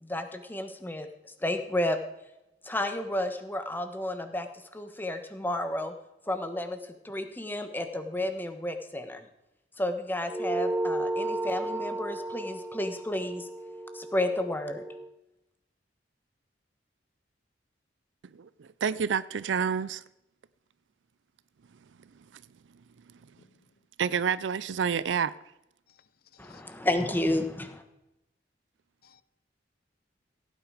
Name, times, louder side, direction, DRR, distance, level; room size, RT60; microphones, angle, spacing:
voice 1, 0.0-2.0 2.6-4.5 4.7-5.9 6.3-9.3 9.8-13.5 13.9-14.8 26.4-27.8, left 1 dB, 10° left, 1.2 m, -31 dB
sound 1, 10.3-15.1, right 2 dB, 10° right, 0.4 m, -33 dB
voice 2, 18.4-20.0 24.0-25.3, right 7 dB, 85° right, 0.4 m, -28 dB
voice 3, 26.3-26.6 29.0-29.2, left 7 dB, 55° left, 0.7 m, -57 dB
16.0 x 9.2 x 5.0 m
head